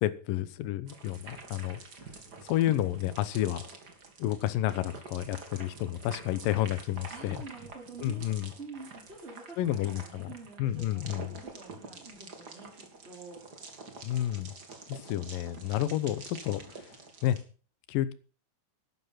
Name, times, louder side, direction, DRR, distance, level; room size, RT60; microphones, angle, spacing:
voice 1, 0.0-1.8 2.5-3.6 4.2-7.4 8.0-8.5 9.6-10.3 10.6-11.4 14.0-14.5 14.9-16.9 17.2-17.4 17.9-18.1, left 13 dB, 85° left, 15 dB, 2.7 m, -30 dB
sound 1, 0.9-17.4, right 4 dB, 35° right, 2.3 m, -47 dB
voice 2, 7.1-13.4, right 4 dB, 20° right, -2 dB, 4.1 m, -47 dB
13.0 x 11.5 x 5.7 m, 0.37 s
omnidirectional pair, 3.9 m